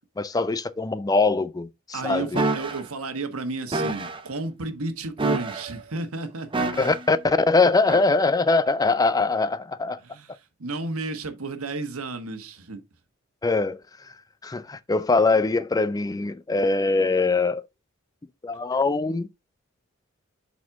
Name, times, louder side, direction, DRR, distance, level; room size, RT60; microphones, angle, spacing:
voice 1, 0.2-2.4 6.8-10.0 13.4-13.8 14.4-17.6 18.4-19.3, left 3 dB, 15° left, 0.3 m, -22 dB
voice 2, 1.9-6.8 10.0-12.8, right 3 dB, 85° right, 1.2 m, -33 dB
sound 1, 2.4-2.8 3.7-4.2 5.2-5.8 6.5-7.1 7.9-8.1, right 2 dB, 25° right, 0.7 m, -27 dB
7.5 x 4.2 x 3.5 m
head